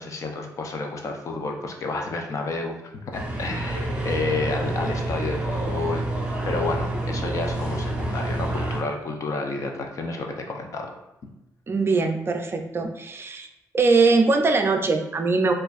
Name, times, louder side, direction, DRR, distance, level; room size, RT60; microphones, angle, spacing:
voice 1, 0.0-6.1 6.4-10.9 11.2-11.3, left 3 dB, 50° left, 3 dB, 0.6 m, -30 dB
sound 1, 3.1-8.8, right 1 dB, 20° right, 0.9 m, -28 dB
voice 2, 11.7-13.5 13.7-15.5, right 3 dB, 35° right, 5 dB, 0.4 m, -21 dB
4.4 x 2.5 x 2.4 m, 0.93 s
cardioid pair, 85°, 7 cm